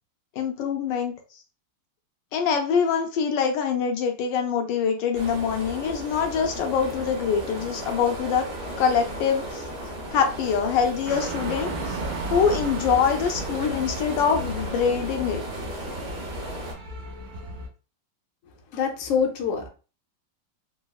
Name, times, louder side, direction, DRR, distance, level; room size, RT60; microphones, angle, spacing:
voice 1, 0.4-1.1 2.3-8.5 8.8-9.6 10.1-12.0 12.3-15.4, left 6 dB, 80° left, 4 dB, 1.3 m, -24 dB
sound 1, 5.1-16.7, right 1 dB, 55° right, 1.5 m, -35 dB
sound 2, 11.1-17.7, right 2 dB, 70° right, 1.3 m, -35 dB
voice 2, 18.7-19.7, left 6 dB, 65° left, 2 dB, 0.8 m, -25 dB
3.9 x 2.0 x 2.3 m, 0.35 s
omnidirectional pair, 2.0 m